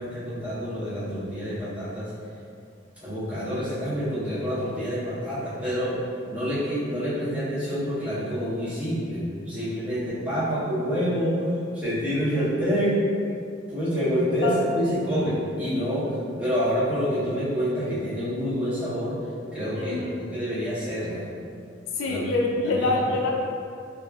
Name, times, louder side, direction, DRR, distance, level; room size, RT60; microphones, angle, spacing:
voice 1, 0.0-2.1 3.0-6.0 6.3-13.0 13.7-19.2 19.5-21.2 22.0-22.2 22.6-23.0, equal, 5° right, -12 dB, 0.7 m, -27 dB
voice 2, 19.7-20.2 21.9-23.3, left 2 dB, 85° left, 0 dB, 0.3 m, -25 dB
2.4 x 2.3 x 2.2 m, 2.4 s
head